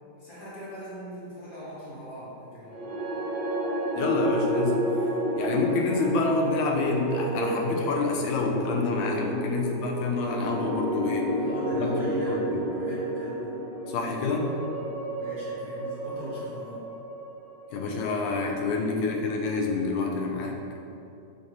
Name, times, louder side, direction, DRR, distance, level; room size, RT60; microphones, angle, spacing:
voice 1, 0.2-2.8 11.3-13.6 15.2-16.8, right 1 dB, 30° left, -9 dB, 1.2 m, -40 dB
sound 1, 2.6-18.9, right 1 dB, 70° right, 1.2 m, -31 dB
voice 2, 3.9-4.9 5.4-11.4 11.7-12.0 12.3-12.4 13.9-14.5 17.7-20.6, left 3 dB, 90° left, 0 dB, 1.3 m, -27 dB
5.1 x 2.6 x 2.9 m, 2.8 s
omnidirectional pair, 2.0 m